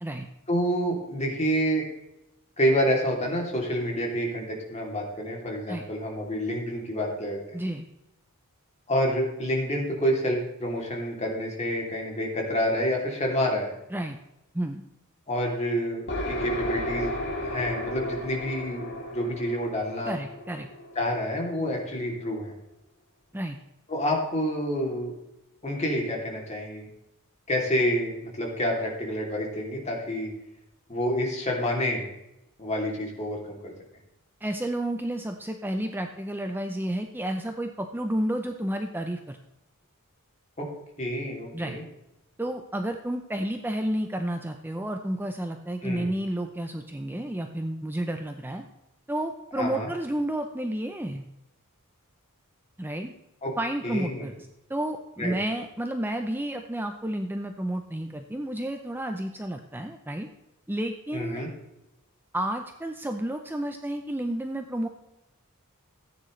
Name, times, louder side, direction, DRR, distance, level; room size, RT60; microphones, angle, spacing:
voice 1, 0.5-1.8 2.6-7.6 8.9-13.7 15.3-17.1 17.4-20.2 20.9-22.5 23.9-25.2 25.6-26.9 27.5-30.3 30.9-32.0 32.6-33.7 40.6-40.7 41.0-41.8 45.8-46.1 49.6-49.9 53.4-53.5 53.8-54.3 55.2-55.3 61.1-61.5, equal, 30° left, -1 dB, 2.9 m, -28 dB
voice 2, 7.5-7.8 13.9-14.2 14.5-14.8 20.0-20.7 23.3-23.6 34.4-39.4 41.5-41.8 42.4-48.6 49.1-51.3 52.8-53.1 53.6-60.3 60.7-61.4 62.3-64.9, right 1 dB, 10° right, 5 dB, 0.6 m, -31 dB
sound 1, 16.1-21.7, left 1 dB, 55° left, 3.0 m, -34 dB
14.5 x 9.3 x 3.2 m, 0.89 s
head